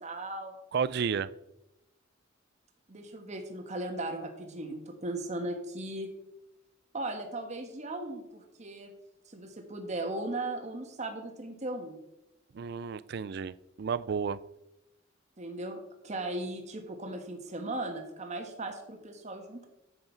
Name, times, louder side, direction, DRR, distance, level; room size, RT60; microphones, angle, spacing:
voice 1, 0.0-0.5 2.9-6.1 6.9-8.9 9.3-12.0 15.4-19.7, right 2 dB, 35° right, 3 dB, 1.3 m, -37 dB
voice 2, 0.7-1.3 12.5-14.4, right 6 dB, 55° right, 18 dB, 0.4 m, -32 dB
9.6 x 7.7 x 4.5 m, 0.91 s
head